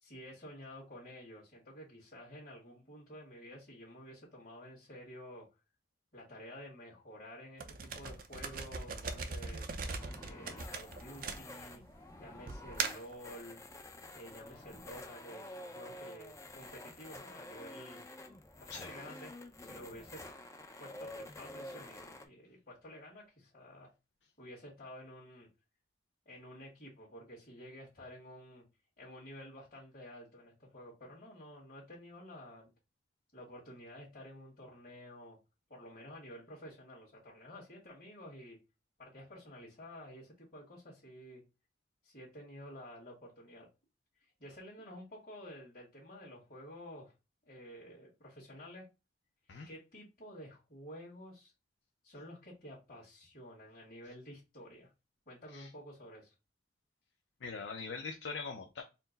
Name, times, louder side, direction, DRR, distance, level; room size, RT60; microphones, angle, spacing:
voice 1, 0.0-5.4 6.1-9.7 10.2-11.8 12.2-13.6 14.2-18.0 18.6-19.3 19.6-20.2 20.8-23.9 24.4-25.5 26.3-28.6 29.0-32.7 33.3-35.4 35.7-38.6 39.0-41.4 42.0-43.7 44.4-47.1 47.4-48.8 49.7-51.5 52.0-54.9 55.3-56.3, equal, 50° left, 1.8 m, -51 dB
sound 1, 7.6-11.9 12.5-13.1, right 4 dB, 50° right, 0.5 m, -39 dB
sound 2, 10.0-22.3, left 1 dB, 15° left, 0.5 m, -49 dB
voice 2, 57.4-58.8, left 4 dB, 85° left, 0.5 m, -42 dB
4.3 x 2.0 x 3.9 m
head